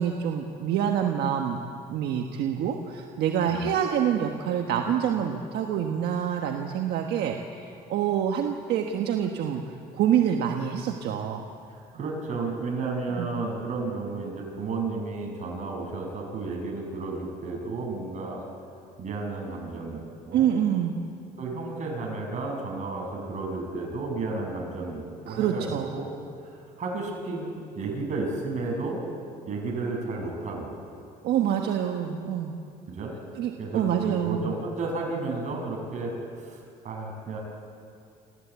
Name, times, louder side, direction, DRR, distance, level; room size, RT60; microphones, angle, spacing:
voice 1, 0.0-1.6 1.9-9.6 9.9-11.5 13.2-13.3 20.3-20.9 25.3-25.9 31.2-32.6 33.3-34.5, right 9 dB, 75° right, 3 dB, 1.4 m, -26 dB
voice 2, 11.7-18.4 19.0-20.5 21.4-26.1 26.8-27.5 27.8-29.0 29.4-30.7 32.9-33.1 33.6-37.4, right 3 dB, 45° right, 0 dB, 6.6 m, -32 dB
27.5 x 15.0 x 8.3 m, 2.5 s
cardioid pair, 110°, 17 cm